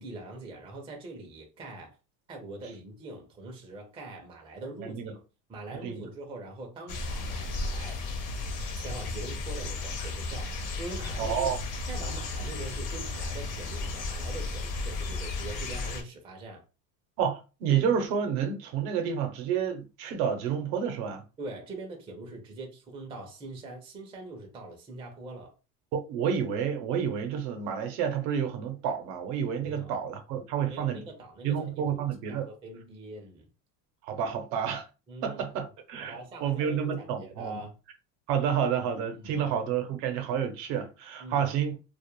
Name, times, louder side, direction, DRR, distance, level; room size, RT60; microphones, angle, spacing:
voice 1, 0.0-2.0 2.3-5.2 5.5-8.0 8.8-11.6 11.9-16.6 21.4-25.5 29.6-30.0 30.6-32.0 32.3-33.5 35.1-35.4 36.0-37.8 39.1-39.5 41.2-41.5, right 2 dB, 10° right, 0.4 m, -43 dB
voice 2, 4.8-5.1 5.7-6.0 11.2-11.6 17.2-21.2 25.9-31.1 31.4-32.5 34.0-34.9 35.2-37.6 38.3-41.8, right 8 dB, 70° right, 0.7 m, -29 dB
sound 1, 6.9-16.0, left 3 dB, 40° left, 0.6 m, -34 dB
2.3 x 2.0 x 2.9 m
supercardioid pair, 115°, 48 cm